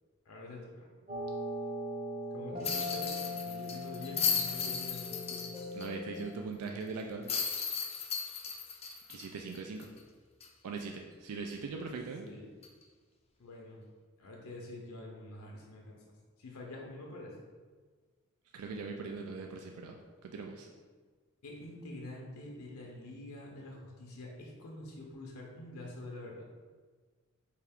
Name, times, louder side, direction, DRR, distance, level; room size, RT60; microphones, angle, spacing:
voice 1, 0.3-0.9 2.3-5.4 12.3-12.4 13.4-13.8 14.2-16.0 16.4-17.4 21.4-26.4, left 2 dB, 75° left, -1 dB, 0.6 m, -46 dB
sound 1, 1.1-6.2, left 1 dB, 25° right, 0.9 m, -40 dB
sound 2, 2.6-5.9 6.2-6.3 7.3-10.0 10.4-10.5 12.6-12.8, left 6 dB, 30° left, 0.4 m, -35 dB
voice 2, 5.7-7.3 9.1-9.9 10.6-12.3 18.5-20.7, right 4 dB, 75° right, 3 dB, 0.3 m, -41 dB
4.4 x 2.4 x 3.5 m, 1.5 s
head